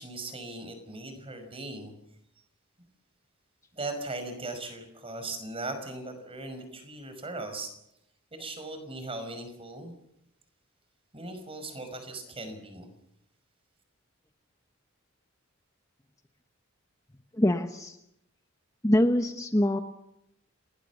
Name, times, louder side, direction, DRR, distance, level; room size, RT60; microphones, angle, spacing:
voice 1, 0.0-1.9 3.7-7.7 8.3-10.0 11.1-12.9, right 2 dB, 25° right, 8 dB, 5.5 m, -38 dB
voice 2, 17.3-18.0 18.8-19.8, left 1 dB, 15° left, 6 dB, 1.2 m, -24 dB
29.0 x 20.5 x 7.2 m, 0.81 s
head